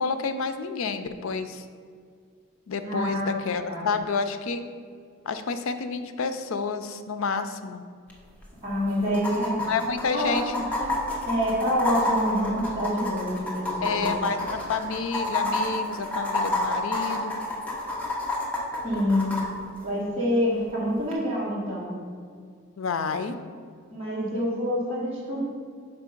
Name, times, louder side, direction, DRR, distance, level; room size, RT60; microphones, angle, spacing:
voice 1, 0.0-1.6 2.7-4.6 5.3-7.8 9.7-10.7 13.8-17.4 22.8-23.3, left 5 dB, 70° left, 9 dB, 0.4 m, -29 dB
voice 2, 2.8-3.3 3.6-3.8 8.6-9.6 10.1-10.4 10.7-10.9 11.3-14.1 18.8-19.4 19.8-22.0 23.9-25.4, equal, 30° right, -8 dB, 1.8 m, -27 dB
sound 1, 8.1-8.2 8.4-8.5 9.1-19.4 21.1-21.2, left 2 dB, 5° left, 0.9 m, -29 dB
5.6 x 4.6 x 5.2 m, 2.1 s
head